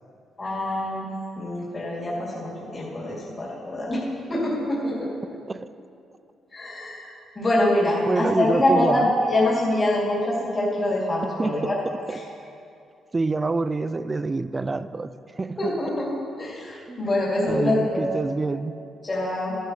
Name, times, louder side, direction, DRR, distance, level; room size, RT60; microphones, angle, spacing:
voice 1, 0.4-1.1 1.4-4.0 4.3-4.9 6.5-11.7 12.1-12.2 15.6-16.1 16.4-18.1 19.0-19.5, left 1 dB, 25° left, -7 dB, 2.8 m, -25 dB
voice 2, 8.1-9.1 11.4-11.7 12.1-12.2 13.1-15.1 15.4-15.8 16.9-17.1 17.5-18.8, right 3 dB, 20° right, 14 dB, 0.3 m, -26 dB
14.5 x 11.5 x 3.2 m, 2.6 s
cardioid pair, 150°, 0 cm